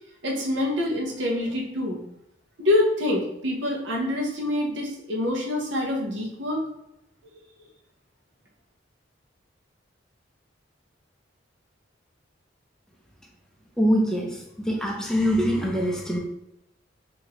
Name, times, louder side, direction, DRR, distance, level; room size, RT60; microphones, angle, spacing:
voice 1, 0.2-2.0 2.6-6.6, left 1 dB, 70° right, -1 dB, 0.9 m, -26 dB
voice 2, 13.8-16.2, equal, 5° left, -2 dB, 0.6 m, -24 dB
4.6 x 2.7 x 3.1 m, 0.82 s
head